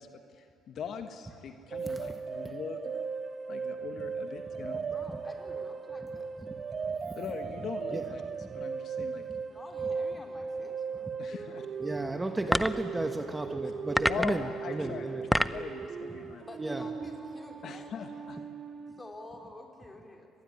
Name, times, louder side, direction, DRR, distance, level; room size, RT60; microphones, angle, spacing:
voice 1, 0.0-2.8 3.5-4.8 7.1-9.2 11.2-11.7 14.1-16.4 17.6-18.4, left 7 dB, 60° left, 6 dB, 1.5 m, -41 dB
sound 1, 1.7-19.1, right 5 dB, 40° right, 1.1 m, -38 dB
voice 2, 4.9-6.3 9.5-11.1 16.4-18.3 19.0-20.3, left 2 dB, 20° left, 2 dB, 4.5 m, -49 dB
voice 3, 6.9-7.2 7.9-8.0 8.5-8.6 11.8-15.2 16.6-16.8, right 2 dB, 15° right, 5 dB, 1.5 m, -34 dB
sound 2, 12.5-12.9 13.9-14.5 15.1-15.7, equal, ahead, 0.7 m, -27 dB
25.0 x 20.5 x 9.9 m, 2.6 s
cardioid pair, 90°, 0 cm